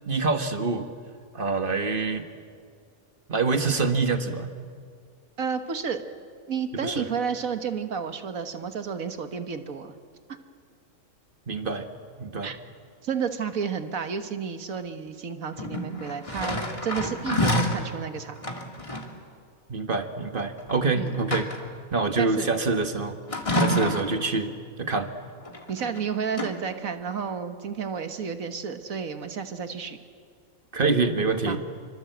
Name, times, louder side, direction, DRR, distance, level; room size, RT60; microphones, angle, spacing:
voice 1, 0.1-0.9 1.3-2.3 3.3-4.5 6.8-7.1 11.5-11.9 12.2-12.5 19.7-21.5 21.9-23.2 23.6-24.5 24.8-25.1 30.7-31.6, right 3 dB, 40° right, 7 dB, 1.6 m, -26 dB
voice 2, 5.4-6.0 6.5-9.9 12.4-12.6 13.0-18.4 20.9-21.2 22.2-22.5 23.8-23.9 25.7-30.0 31.5-31.6, right 6 dB, 75° right, 8 dB, 1.7 m, -31 dB
sound 1, 15.6-17.8 18.4-19.1 20.6-20.7 21.1-21.8 23.3-24.2 25.5-26.0 26.3-26.5, left 1 dB, 25° left, 2.3 m, -28 dB
26.5 x 24.5 x 7.9 m, 2.2 s
omnidirectional pair, 1.5 m